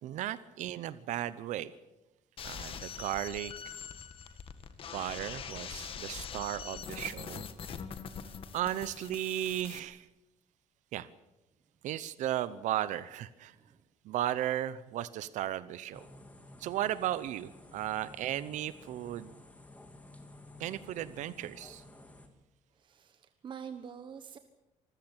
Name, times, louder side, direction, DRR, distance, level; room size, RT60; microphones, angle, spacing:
voice 1, 0.0-1.7 2.4-3.5 4.9-7.5 8.5-10.0 10.9-11.1 11.8-13.5 14.0-16.1 16.6-19.3 20.6-21.8, right 12 dB, 80° right, 16 dB, 0.9 m, -35 dB
sound 1, 2.4-9.8, left 7 dB, 45° left, 1.8 m, -43 dB
voice 2, 13.5-13.8 22.7-24.4, right 7 dB, 40° right, 9 dB, 1.3 m, -46 dB
sound 2, 15.9-22.3, left 2 dB, 10° left, 2.4 m, -53 dB
25.5 x 15.5 x 9.0 m, 0.97 s
cardioid pair, 150°, 12 cm